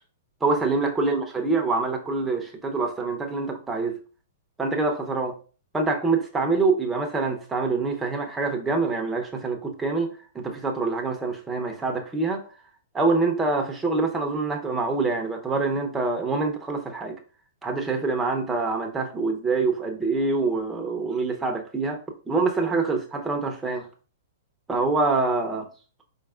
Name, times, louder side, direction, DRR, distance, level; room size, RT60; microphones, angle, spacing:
voice 1, 0.4-4.0 4.6-5.3 5.7-12.4 12.9-17.2 17.6-22.0 22.3-23.9 24.7-25.7, right 3 dB, 10° right, 0.8 m, -25 dB
4.5 x 4.4 x 2.4 m
hypercardioid pair, 140°, 0 cm